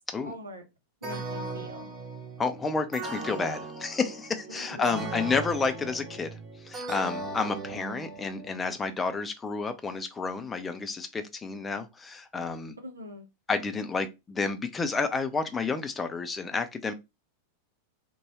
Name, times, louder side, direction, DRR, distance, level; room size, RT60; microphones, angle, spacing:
voice 1, 0.2-0.6 1.0-1.9 4.6-5.0 12.8-13.3, equal, 80° right, 0.7 m, -42 dB
sound 1, 1.0-8.7, right 3 dB, 25° right, 0.7 m, -38 dB
voice 2, 2.4-6.4 6.6-12.8 13.5-16.9, left 4 dB, 15° left, 0.4 m, -30 dB
2.7 x 2.2 x 3.0 m
figure-of-eight pair, 90°, 0 cm